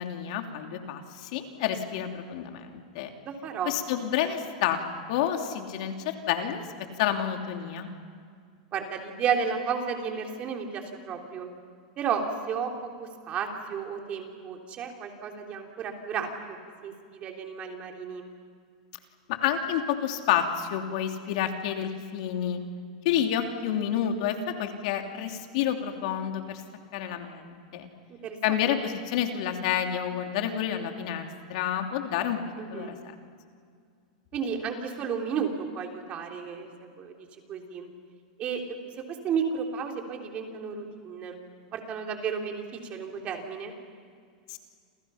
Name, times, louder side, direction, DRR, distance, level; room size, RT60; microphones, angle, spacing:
voice 1, 0.0-3.1 3.7-4.8 5.1-6.6 7.0-7.9 19.3-22.6 23.0-26.6 26.9-27.9 28.4-32.4 32.7-33.0 44.5-44.6, left 9 dB, 60° left, 4 dB, 2.9 m, -29 dB
voice 2, 3.3-3.8 8.7-11.5 12.0-16.3 16.8-18.3 28.2-28.6 32.6-32.9 34.3-36.7 37.0-37.2 37.5-37.9 38.4-38.6 39.1-41.4 41.7-42.6 42.9-43.8, right 6 dB, 30° right, 2 dB, 3.5 m, -32 dB
29.5 x 28.0 x 5.8 m, 2.1 s
supercardioid pair, 145°, 4 cm